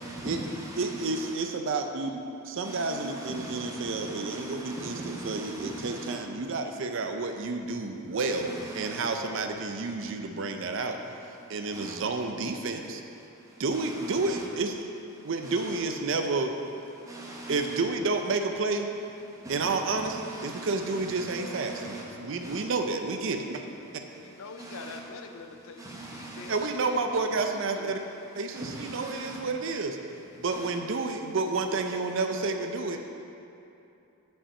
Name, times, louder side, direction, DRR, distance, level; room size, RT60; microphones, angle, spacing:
voice 1, 0.0-0.8 2.6-6.1 8.5-9.1 11.7-11.9 13.7-14.4 15.4-15.5 17.0-17.6 19.4-20.8 21.0-22.0 22.4-22.6 24.6-25.0 25.8-26.6 28.5-29.4 30.5-30.7, right 2 dB, 15° right, 0.9 m, -40 dB
voice 2, 0.8-11.0 11.5-13.0 13.6-14.8 15.2-16.5 17.5-18.9 19.5-23.6 26.5-28.0 28.3-30.0 30.4-33.0, right 3 dB, 60° right, 0.5 m, -30 dB
voice 3, 24.2-27.0 27.4-28.0, left 4 dB, 65° left, 0.4 m, -45 dB
5.6 x 5.5 x 6.8 m
head